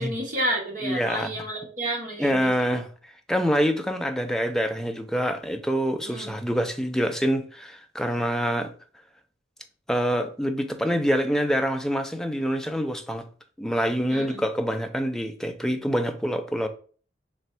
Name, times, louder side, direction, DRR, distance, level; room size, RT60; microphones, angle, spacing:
voice 1, 0.0-2.8 6.0-6.3 14.1-14.4, right 1 dB, 45° right, 1.2 m, -31 dB
voice 2, 0.8-1.3 2.2-2.9 3.3-8.7 9.9-13.2 13.6-16.7, equal, 5° left, 0.3 m, -26 dB
3.3 x 2.6 x 4.2 m
head